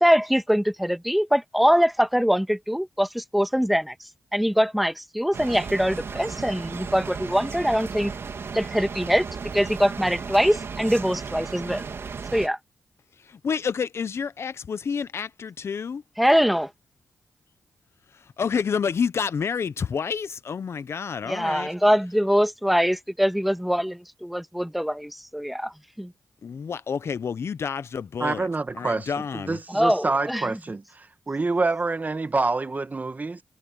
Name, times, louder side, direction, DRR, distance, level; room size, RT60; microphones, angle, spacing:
voice 1, 0.0-3.9 4.3-8.1 8.5-9.3 9.5-11.8 12.3-12.6 16.2-16.7 21.3-25.7 26.0-26.1 29.7-30.4, equal, ahead, 1.8 m, -23 dB
sound 1, 5.3-12.5, right 5 dB, 60° right, 3.0 m, -35 dB
voice 2, 13.2-16.0 18.1-21.7 26.4-28.5 28.7-29.6, left 6 dB, 65° left, 0.8 m, -29 dB
voice 3, 28.2-33.4, right 3 dB, 35° right, 1.7 m, -27 dB
cardioid pair, 55°, 5 cm